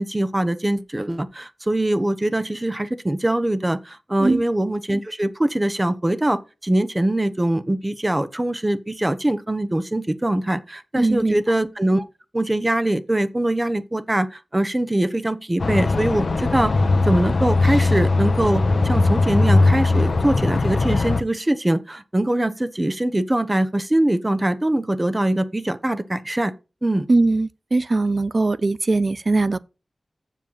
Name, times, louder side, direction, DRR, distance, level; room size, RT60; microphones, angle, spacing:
voice 1, 0.0-12.0 12.3-16.7 17.0-26.5 26.8-27.1, right 1 dB, 20° right, 0.9 m, -22 dB
voice 2, 11.0-11.4 27.1-29.6, right 3 dB, 50° right, 0.4 m, -20 dB
sound 1, 15.6-21.2, left 3 dB, 70° left, 0.8 m, -19 dB
7.3 x 7.1 x 5.7 m
wide cardioid pair, 70°, 0 cm